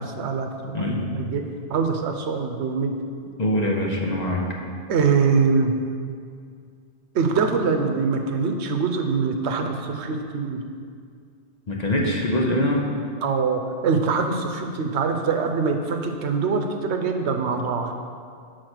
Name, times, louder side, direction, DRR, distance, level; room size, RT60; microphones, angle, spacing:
voice 1, 0.0-1.4 1.7-2.9 4.9-5.7 7.1-10.6 13.2-17.9, right 5 dB, 90° right, 5 dB, 1.0 m, -23 dB
voice 2, 0.7-1.1 3.4-4.5 11.7-12.9, left 1 dB, 45° left, -1 dB, 0.8 m, -23 dB
6.5 x 4.2 x 6.1 m, 2.2 s
omnidirectional pair, 1.1 m